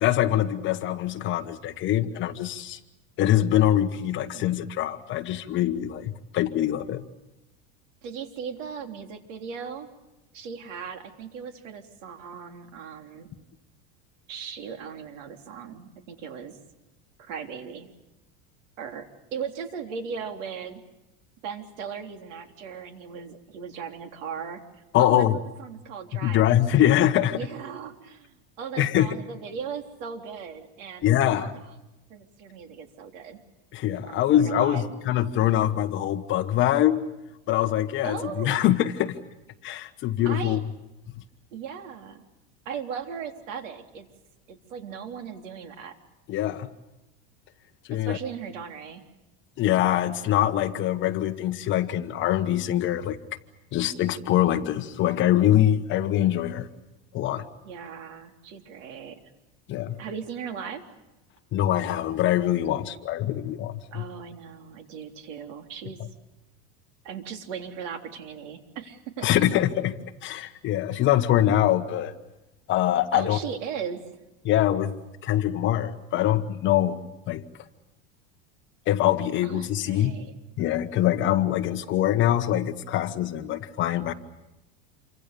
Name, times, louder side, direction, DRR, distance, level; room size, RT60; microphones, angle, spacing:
voice 1, 0.0-2.8 3.2-7.0 24.9-25.3 26.1-27.4 28.8-29.1 31.0-31.5 33.7-37.0 37.5-39.2 39.6-40.6 46.3-46.7 47.9-48.2 49.6-53.2 53.7-56.7 57.1-57.4 59.7-60.0 61.5-64.0 69.2-69.9 70.2-72.1 72.7-73.4 74.4-74.9 75.2-77.0 77.3-77.4 78.9-80.1 80.6-84.1, left 12 dB, 30° left, 8 dB, 1.3 m, -23 dB
voice 2, 3.6-3.9 4.2-4.6 8.0-9.9 10.3-13.3 14.3-16.6 17.2-17.9 18.8-20.8 21.4-24.6 25.0-25.3 25.6-26.5 27.4-31.6 32.1-33.4 33.9-34.9 38.0-38.6 40.3-40.6 41.5-42.2 42.7-44.1 44.5-46.0 48.0-49.0 57.6-59.2 60.0-60.8 63.9-66.0 67.0-69.5 73.1-74.0 79.4-80.3, right 7 dB, 85° right, 6 dB, 3.8 m, -38 dB
28.0 x 25.0 x 6.9 m, 0.99 s
supercardioid pair, 170°, 37 cm